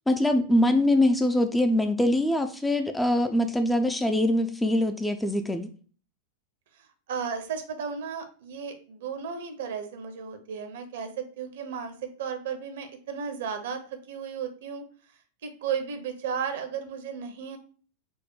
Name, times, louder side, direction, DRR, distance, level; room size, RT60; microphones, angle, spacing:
voice 1, 0.1-5.7, left 1 dB, 5° left, 7 dB, 0.4 m, -23 dB
voice 2, 6.8-13.8 14.1-14.9 15.4-17.6, right 6 dB, 60° right, 7 dB, 0.7 m, -34 dB
4.4 x 2.1 x 4.6 m, 0.41 s
figure-of-eight pair, 90°, 0 cm